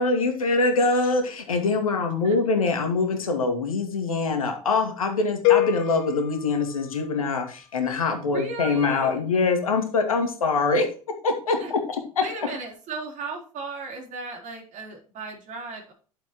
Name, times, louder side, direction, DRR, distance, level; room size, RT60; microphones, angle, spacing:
voice 1, 0.0-10.9 11.2-12.2, left 3 dB, 75° left, 5 dB, 2.2 m, -24 dB
sound 1, 5.4-7.5, left 15 dB, 50° left, 0.6 m, -26 dB
voice 2, 8.3-9.2 11.6-11.7 12.2-15.9, right 4 dB, 45° right, 1 dB, 4.1 m, -36 dB
11.5 x 7.5 x 3.1 m, 0.39 s
figure-of-eight pair, 70°, 18 cm